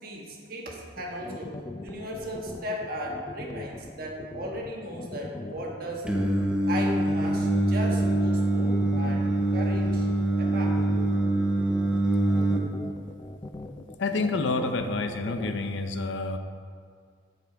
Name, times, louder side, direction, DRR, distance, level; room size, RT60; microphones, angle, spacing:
voice 1, 0.0-1.6 1.8-6.2 6.7-10.1 10.4-10.9, equal, 50° right, -1 dB, 1.4 m, -36 dB
sound 1, 1.0-15.7, left 2 dB, 20° left, 0.3 m, -40 dB
Singing, 6.1-12.6, right 1 dB, 5° right, 0.8 m, -24 dB
voice 2, 14.0-16.4, left 3 dB, 80° left, 7 dB, 0.7 m, -28 dB
8.4 x 6.7 x 4.7 m, 2.1 s
head